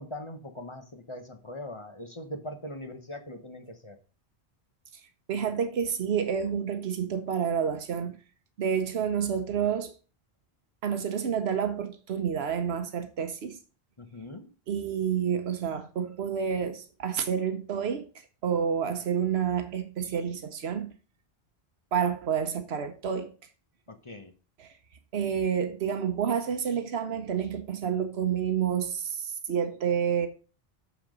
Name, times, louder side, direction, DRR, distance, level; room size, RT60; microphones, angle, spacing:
voice 1, 0.0-4.0 14.0-14.5 23.9-24.3, left 1 dB, 30° left, 1.1 m, -41 dB
voice 2, 5.3-8.2 8.6-9.9 10.8-13.6 14.7-18.1 18.4-20.9 21.9-23.3 24.6-24.7 25.1-30.3, right 7 dB, 90° right, 1.1 m, -29 dB
6.9 x 6.3 x 5.2 m
omnidirectional pair, 1.0 m